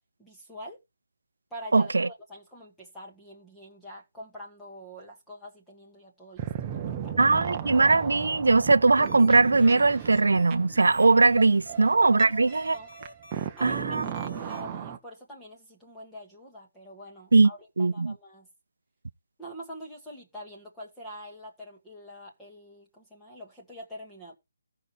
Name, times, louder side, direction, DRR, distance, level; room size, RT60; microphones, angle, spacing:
voice 1, 0.2-0.8 1.5-7.2 11.7-11.9 12.4-12.9 13.6-18.5 19.4-24.4, equal, 5° left, 1.5 m, -45 dB
voice 2, 1.7-2.1 7.2-12.8 13.6-14.0 17.3-17.5 17.8-18.1, right 3 dB, 85° right, 0.6 m, -20 dB
sound 1, 6.4-15.0, right 9 dB, 15° right, 0.8 m, -36 dB
sound 2, 9.0-14.6, left 2 dB, 60° left, 3.1 m, -50 dB
14.5 x 5.4 x 4.4 m
hypercardioid pair, 170°, 0 cm